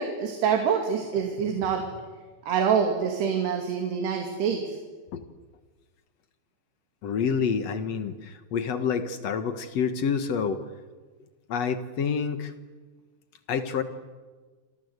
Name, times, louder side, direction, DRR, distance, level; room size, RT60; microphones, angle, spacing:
voice 1, 0.0-1.8 2.4-4.8, right 7 dB, 75° right, 3 dB, 4.5 m, -26 dB
voice 2, 7.0-10.6 11.5-12.5 13.5-13.8, left 6 dB, 60° left, 9 dB, 1.8 m, -28 dB
27.0 x 27.0 x 8.1 m, 1.4 s
omnidirectional pair, 4.8 m